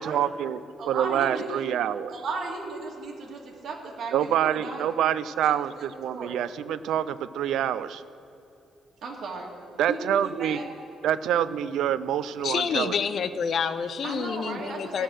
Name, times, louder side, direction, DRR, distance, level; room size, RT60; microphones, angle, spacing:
voice 1, 0.0-2.1 4.1-8.0 9.8-10.6 11.0-12.9, right 10 dB, 75° right, 14 dB, 0.4 m, -26 dB
voice 2, 0.8-1.6 2.1-5.1 5.4-6.4 9.0-9.5 9.9-10.6 14.0-15.0, right 3 dB, 55° right, -2 dB, 2.1 m, -36 dB
voice 3, 12.4-15.0, left 6 dB, 45° left, 11 dB, 0.5 m, -28 dB
16.0 x 6.4 x 6.3 m, 2.8 s
cardioid pair, 165°, 0 cm